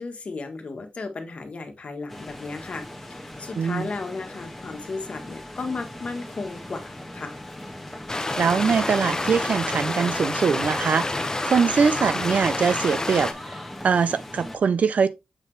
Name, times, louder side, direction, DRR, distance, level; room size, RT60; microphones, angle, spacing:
voice 1, 0.0-2.8 3.1-7.4, left 3 dB, 60° left, 1.5 m, -34 dB
sound 1, 2.1-14.6, left 1 dB, 5° left, 1.3 m, -40 dB
voice 2, 3.6-3.9 8.4-13.3 13.8-15.1, right 6 dB, 75° right, 0.6 m, -22 dB
sound 2, 8.1-13.3, left 2 dB, 25° left, 0.9 m, -28 dB
7.3 x 4.2 x 3.3 m
wide cardioid pair, 85°, 3 cm